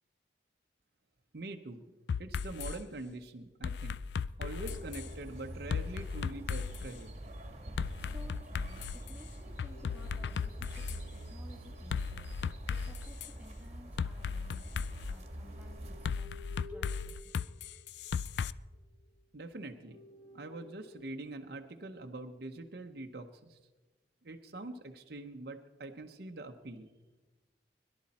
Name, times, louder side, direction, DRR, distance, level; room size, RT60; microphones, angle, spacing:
voice 1, 1.3-1.9 2.2-4.0 4.4-7.2 19.3-20.0 20.3-23.6 24.2-26.9, right 2 dB, 60° right, 4 dB, 0.8 m, -44 dB
sound 1, 2.1-2.8 3.6-5.1 5.7-6.9 7.8-9.1 9.6-11.0 11.9-13.3 14.0-15.2 16.0-18.5, left 6 dB, 70° left, 0.4 m, -36 dB
sound 2, 4.4-7.6 9.3-14.4 14.8-19.2 19.6-21.4 22.2-22.7, left 2 dB, 20° left, 1.1 m, -56 dB
sound 3, 4.5-16.1, right 1 dB, 40° right, 1.6 m, -46 dB
voice 2, 8.0-12.3 12.7-17.3, left 1 dB, 10° right, 0 dB, 1.9 m, -56 dB
22.0 x 11.5 x 4.2 m, 1.2 s
head